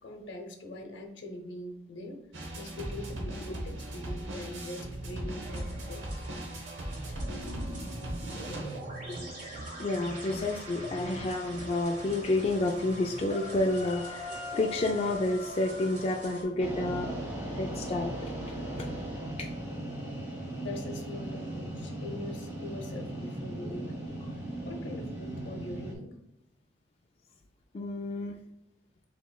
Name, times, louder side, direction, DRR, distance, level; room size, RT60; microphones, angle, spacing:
voice 1, 0.0-2.2 2.5-6.0 20.5-24.0 24.6-26.2, left 1 dB, 70° left, 3 dB, 0.8 m, -42 dB
sound 1, 2.3-13.7, right 1 dB, 80° right, 1.0 m, -40 dB
sound 2, 5.4-16.4, right 2 dB, 45° right, 1.5 m, -44 dB
voice 2, 9.8-17.1 17.6-18.9 19.4-19.5 27.7-28.4, left 2 dB, 30° left, 2 dB, 0.3 m, -30 dB
sound 3, 16.6-25.9, right 1 dB, 15° right, 1.3 m, -37 dB
6.9 x 3.0 x 2.3 m, 0.79 s
head